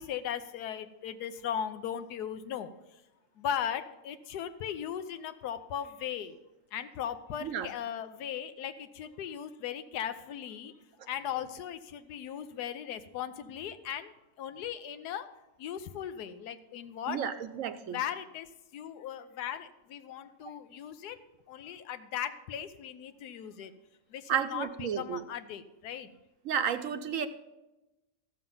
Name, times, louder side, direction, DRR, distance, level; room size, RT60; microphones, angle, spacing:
voice 1, 0.0-3.0 3.4-6.3 6.7-10.7 11.1-15.3 15.6-17.2 17.9-23.7 24.1-26.1, left 9 dB, 90° left, 11 dB, 1.3 m, -38 dB
voice 2, 17.1-18.0 24.3-25.2 26.4-27.3, right 8 dB, 65° right, 9 dB, 0.9 m, -32 dB
14.0 x 6.9 x 5.4 m, 1.0 s
omnidirectional pair, 1.7 m